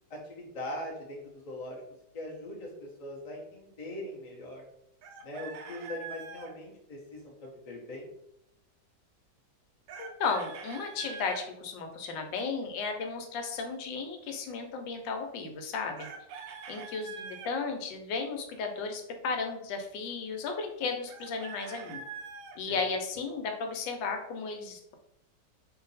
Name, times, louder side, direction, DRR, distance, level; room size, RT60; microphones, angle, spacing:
voice 1, 0.1-1.8 2.1-4.6 5.2-8.1 22.7-22.8, left 1 dB, 45° left, -2 dB, 0.5 m, -41 dB
Chicken rooster, 5.0-6.5 9.9-11.4 16.0-17.5 21.1-22.6, right 5 dB, 90° right, 0.7 m, -44 dB
voice 2, 10.0-16.1 16.7-22.0 22.6-24.9, left 4 dB, 90° left, 4 dB, 1.3 m, -34 dB
2.8 x 2.5 x 3.9 m, 0.81 s
omnidirectional pair, 1.9 m